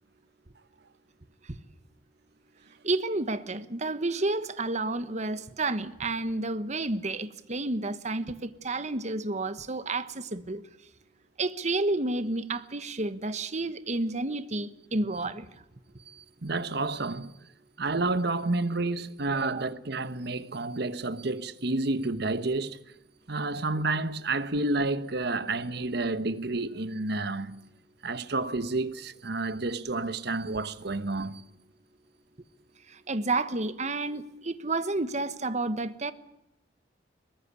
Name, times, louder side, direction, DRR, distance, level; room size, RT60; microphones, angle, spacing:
voice 1, 2.8-10.6 11.4-15.4 19.4-19.6 33.1-36.1, right 2 dB, 40° right, 1.2 m, -30 dB
voice 2, 16.1-17.3 17.8-22.8 23.3-27.6 28.0-31.4, right 2 dB, 65° right, 1.2 m, -30 dB
22.5 x 19.5 x 8.4 m
head